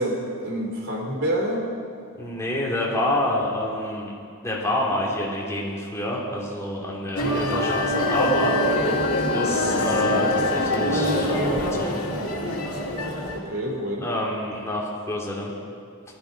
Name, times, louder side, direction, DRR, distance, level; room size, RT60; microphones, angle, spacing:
voice 1, 0.0-1.7 13.3-14.1, right 1 dB, 60° right, 0 dB, 3.1 m, -27 dB
voice 2, 2.1-4.1 4.4-8.8 9.3-12.0 14.0-15.5, left 1 dB, 15° left, -4 dB, 2.8 m, -27 dB
sound 1, 7.2-13.4, left 1 dB, 80° left, 2.4 m, -24 dB
18.5 x 13.0 x 5.2 m, 2.3 s
head